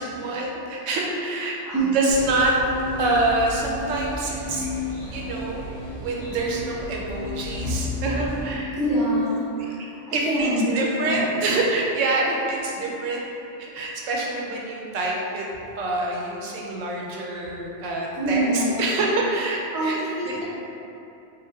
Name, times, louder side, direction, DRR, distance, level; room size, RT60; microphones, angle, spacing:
voice 1, 0.0-2.5 3.0-4.7 5.1-5.6 6.0-8.8 9.6-9.7 10.1-13.3 13.6-15.5 15.8-20.4, right 2 dB, 90° right, -2 dB, 0.9 m, -26 dB
voice 2, 1.7-2.0 7.5-7.7 8.8-9.8 10.1-11.4 12.3-12.4 18.2-18.8 19.7-20.4, right 1 dB, 5° right, -10 dB, 0.3 m, -25 dB
sound 1, 2.1-8.6, left 1 dB, 80° left, 1.2 m, -33 dB
2.5 x 2.4 x 3.3 m, 2.8 s
omnidirectional pair, 1.3 m